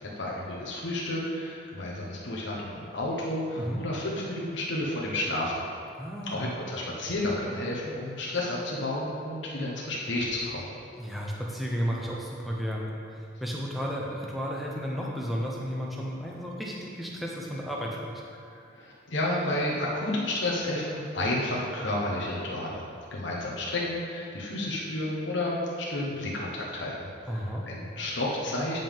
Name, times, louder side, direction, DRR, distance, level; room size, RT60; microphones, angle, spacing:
voice 1, 0.0-5.5 6.3-10.7 18.5-22.8 23.1-28.8, left 1 dB, 75° left, -4 dB, 1.1 m, -31 dB
voice 2, 5.9-6.5 11.0-18.2 27.3-27.6, equal, ahead, -3 dB, 0.8 m, -33 dB
9.2 x 5.3 x 3.7 m, 2.4 s
head